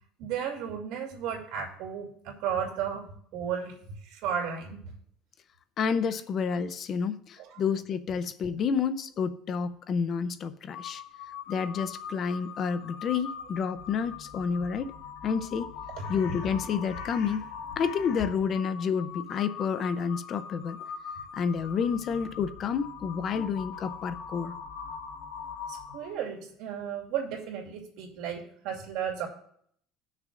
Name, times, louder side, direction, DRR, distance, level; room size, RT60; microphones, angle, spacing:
voice 1, 0.2-3.1 3.3-4.8 16.0-16.1 25.7-29.3, right 8 dB, 70° right, 1 dB, 2.7 m, -34 dB
voice 2, 5.8-11.0 11.5-14.9 15.2-15.7 16.1-17.4 17.8-20.8 21.3-24.5, left 6 dB, 40° left, 12 dB, 0.6 m, -29 dB
Crow, 10.7-26.2, left 6 dB, 80° left, 1.5 m, -41 dB
18.0 x 6.5 x 2.5 m, 0.66 s
cardioid pair, 145°, 0 cm